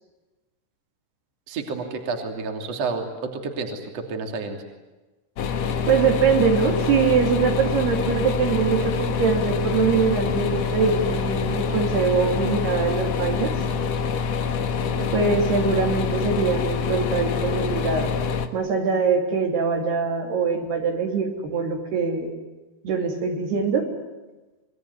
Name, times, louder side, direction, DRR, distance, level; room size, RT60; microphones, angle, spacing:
voice 1, 1.5-4.6 15.0-15.3, right 4 dB, 40° right, 3 dB, 3.6 m, -30 dB
sound 1, 5.4-18.5, left 5 dB, 85° left, 1.4 m, -26 dB
voice 2, 5.9-13.5 15.1-18.1 18.5-22.3 22.8-23.9, right 5 dB, 60° right, 2 dB, 4.6 m, -23 dB
27.0 x 22.0 x 9.6 m, 1.2 s
omnidirectional pair, 5.4 m